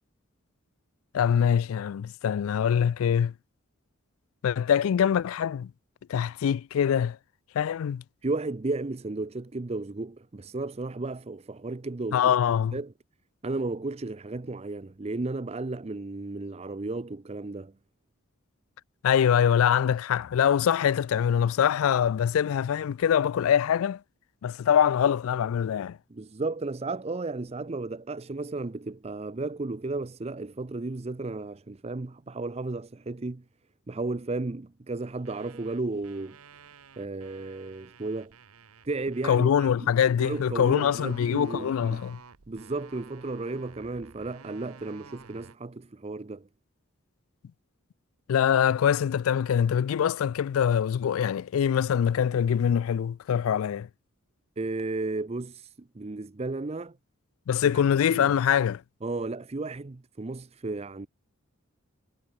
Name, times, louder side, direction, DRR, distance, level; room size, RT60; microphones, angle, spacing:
voice 1, 1.1-3.3 4.4-5.7 6.1-7.2 7.5-8.0 12.1-12.8 19.0-24.0 24.4-26.0 39.2-42.2 48.3-53.9 57.5-58.8, left 8 dB, 70° left, 0.3 m, -24 dB
voice 2, 8.2-12.3 12.7-12.9 13.4-17.7 26.1-33.4 33.9-36.4 37.0-38.3 38.8-39.9 40.2-42.0 42.5-46.5 54.6-57.0 57.6-58.4 59.0-61.1, right 3 dB, 30° right, 0.5 m, -34 dB
sound 1, 35.1-39.5 40.3-45.6, right 5 dB, 85° right, 1.0 m, -52 dB
head